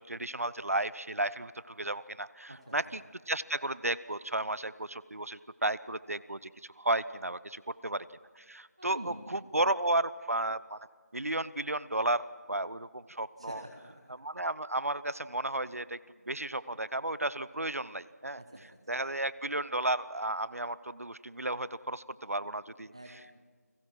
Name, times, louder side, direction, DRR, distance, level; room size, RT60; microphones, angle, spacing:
voice 1, 0.0-8.1 8.4-10.8 11.1-13.6 14.1-16.0 16.3-18.4 18.9-22.9, right 2 dB, 60° right, 18 dB, 0.8 m, -33 dB
voice 2, 2.5-3.0 8.8-9.5 13.4-14.1 18.4-18.6 22.9-23.4, right 1 dB, 20° right, 3 dB, 1.0 m, -47 dB
29.5 x 21.0 x 6.0 m, 1.5 s
figure-of-eight pair, 175°, 9 cm